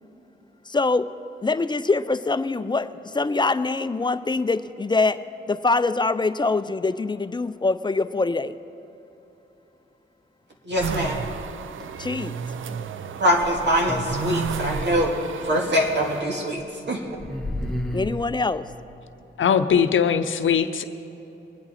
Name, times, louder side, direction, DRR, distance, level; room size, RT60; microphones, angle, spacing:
voice 1, 0.7-1.1 1.4-5.2 5.5-8.6 12.0-12.4 17.9-18.7, left 3 dB, 20° left, 13 dB, 0.5 m, -24 dB
voice 2, 10.6-11.2 12.7-12.8 13.2-15.2 15.4-17.2, equal, 60° right, -1 dB, 2.1 m, -23 dB
sound 1, 10.7-11.8 13.3-15.1 16.0-16.3 16.6-16.7 17.0-18.3, left 1 dB, ahead, 1.6 m, -33 dB
sound 2, 10.8-16.2, right 7 dB, 75° right, 0.5 m, -33 dB
voice 3, 19.4-20.8, left 7 dB, 75° left, 9 dB, 0.6 m, -20 dB
21.5 x 8.6 x 4.2 m, 3.0 s
cardioid pair, 65°, 21 cm